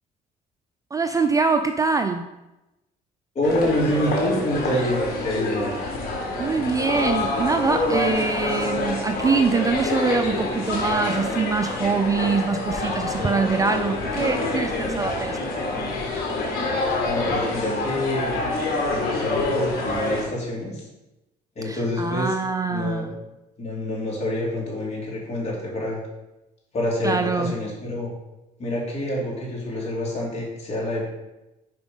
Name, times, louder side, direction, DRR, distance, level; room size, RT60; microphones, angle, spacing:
voice 1, 0.9-2.3 6.3-15.7 21.6-23.1 27.0-27.5, right 4 dB, 20° right, 7 dB, 0.3 m, -24 dB
voice 2, 3.3-5.8 17.0-18.4 18.9-20.9 21.6-22.4 22.7-23.1 23.6-26.0 26.7-28.1 28.6-31.0, left 1 dB, 40° left, -4 dB, 2.5 m, -27 dB
sound 1, 3.4-20.2, left 2 dB, 65° left, 1.7 m, -26 dB
5.1 x 4.8 x 5.3 m, 0.98 s
cardioid pair, 110°, 17 cm